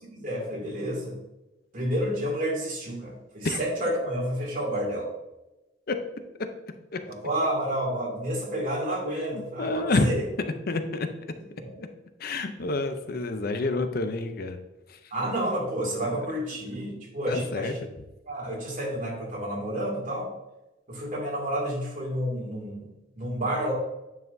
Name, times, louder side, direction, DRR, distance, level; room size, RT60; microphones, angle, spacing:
voice 1, 0.0-1.2 1.7-5.1 7.1-10.2 11.6-11.7 15.1-17.8 18.3-20.3 20.9-23.7, right 1 dB, 45° right, -2 dB, 2.4 m, -30 dB
voice 2, 9.2-10.2 10.7-11.1 11.8-11.9 12.2-14.6 14.9-15.1 16.5-16.6 17.3-17.9, left 3 dB, 55° left, 7 dB, 0.6 m, -28 dB
9.3 x 5.7 x 2.6 m, 1.0 s
head